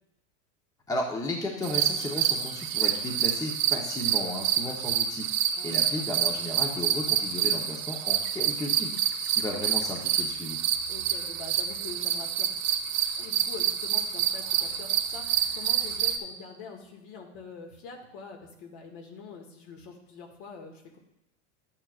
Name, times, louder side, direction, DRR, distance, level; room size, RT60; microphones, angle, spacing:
voice 1, 0.9-5.3 5.6-8.9 9.3-10.6, left 1 dB, 10° left, 1 dB, 0.9 m, -34 dB
sound 1, 1.6-16.2, right 10 dB, 80° right, 1.1 m, -28 dB
voice 2, 5.5-6.1 10.9-12.5 13.2-21.0, left 5 dB, 60° left, 2 dB, 2.0 m, -44 dB
11.5 x 8.8 x 2.4 m, 0.89 s
supercardioid pair, 130°, 38 cm